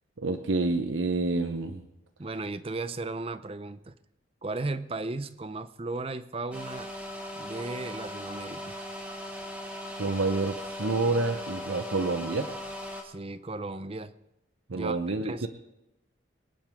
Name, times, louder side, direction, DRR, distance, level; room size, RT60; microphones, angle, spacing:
voice 1, 0.2-1.8 10.0-12.5 14.7-15.5, right 3 dB, 80° right, 7 dB, 0.9 m, -28 dB
voice 2, 2.2-3.9 4.4-6.9 7.3-8.7 13.0-14.1 14.7-15.0 15.2-15.5, right 2 dB, 30° right, 13 dB, 0.6 m, -35 dB
sound 1, 6.5-13.0, left 1 dB, 5° right, 1.9 m, -38 dB
25.0 x 10.5 x 3.6 m, 0.91 s
head